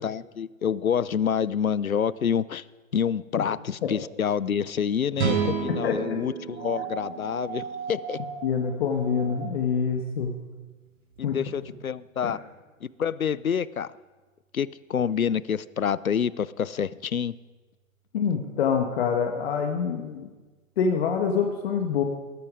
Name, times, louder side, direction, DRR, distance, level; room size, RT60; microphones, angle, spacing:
voice 1, 0.0-2.6 2.9-8.2 11.2-12.4 12.8-13.9 14.5-17.3, left 7 dB, 80° left, 20 dB, 0.8 m, -27 dB
sound 1, 5.2-8.5, right 7 dB, 50° right, 5.3 m, -31 dB
sound 2, 6.5-9.8 11.2-11.3, right 6 dB, 65° right, 3.0 m, -38 dB
voice 2, 8.4-10.3 11.2-11.4 12.2-12.3 18.1-20.3 20.8-22.0, left 6 dB, 45° left, 4 dB, 1.8 m, -26 dB
20.5 x 14.0 x 4.9 m, 1.3 s
figure-of-eight pair, 125°, 41 cm